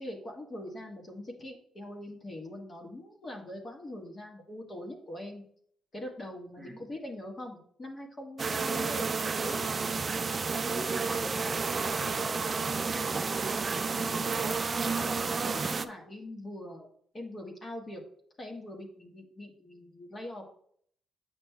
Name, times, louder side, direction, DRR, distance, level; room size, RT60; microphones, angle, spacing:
voice 1, 0.0-5.4 5.9-9.6 12.5-12.8 13.9-14.5 14.8-16.9 17.1-18.0 18.4-20.6, left 1 dB, 30° left, 1 dB, 1.4 m, -42 dB
sound 1, 8.4-15.9, right 4 dB, 35° right, 0.4 m, -31 dB
voice 2, 10.7-13.6, right 1 dB, 10° right, -1 dB, 1.4 m, -42 dB
8.3 x 6.0 x 2.3 m, 0.63 s
cardioid pair, 90°, 0 cm